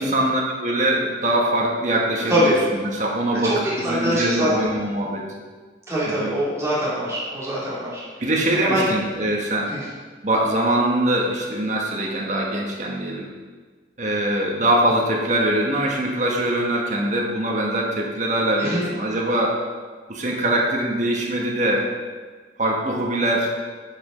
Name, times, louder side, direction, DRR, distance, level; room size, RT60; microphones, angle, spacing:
voice 1, 0.0-5.2 6.1-6.3 8.2-9.7 10.2-13.3 14.0-19.6 20.1-21.9 22.6-23.5, right 1 dB, 40° right, -1 dB, 1.4 m, -22 dB
voice 2, 3.4-4.6 5.9-8.0 8.6-8.8 9.7-9.8 18.6-18.8, equal, 15° right, -9 dB, 2.6 m, -23 dB
10.5 x 5.3 x 5.1 m, 1.4 s
head